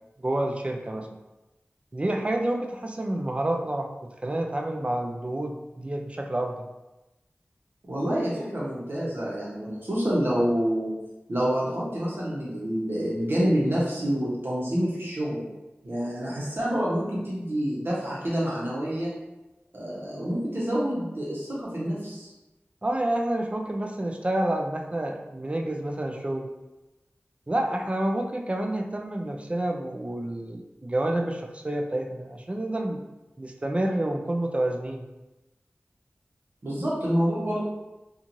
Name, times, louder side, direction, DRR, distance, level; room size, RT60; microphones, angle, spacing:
voice 1, 0.2-1.1 1.9-6.7 22.8-26.5 27.5-33.0 33.4-35.0, right 1 dB, 30° right, 2 dB, 0.4 m, -29 dB
voice 2, 7.9-10.9 11.3-15.4 15.8-19.1 19.7-22.3 36.6-37.6, equal, 60° right, -7 dB, 0.9 m, -27 dB
2.9 x 2.4 x 2.6 m, 1.0 s
wide cardioid pair, 60°, 4 cm